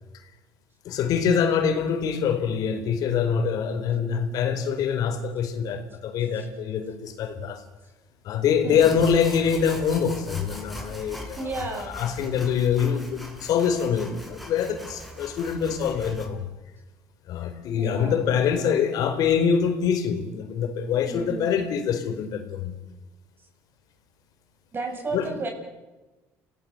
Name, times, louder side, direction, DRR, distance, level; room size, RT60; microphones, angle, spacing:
voice 1, 0.8-7.6 8.2-11.5 11.8-16.5 17.3-22.7 25.1-25.3, left 7 dB, 70° left, 8 dB, 4.6 m, -25 dB
sound 1, 8.7-16.3, left 1 dB, ahead, 6.5 m, -40 dB
voice 2, 11.4-12.0 17.8-18.3 21.1-21.6 24.7-25.5, right 3 dB, 35° right, 3 dB, 7.7 m, -33 dB
29.0 x 18.0 x 8.1 m, 1.1 s
cardioid pair, 100°, 7 cm